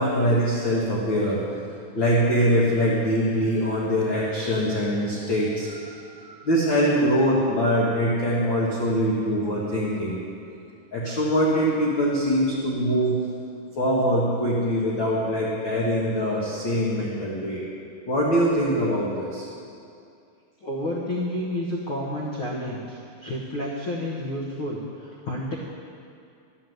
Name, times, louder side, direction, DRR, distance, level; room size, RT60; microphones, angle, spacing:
voice 1, 0.0-10.2 10.9-13.2 13.8-17.6 18.1-19.5, equal, 45° left, -6 dB, 1.7 m, -23 dB
voice 2, 20.6-25.5, left 1 dB, 60° left, -3 dB, 1.4 m, -30 dB
13.0 x 7.6 x 7.9 m, 2.4 s
omnidirectional pair, 4.2 m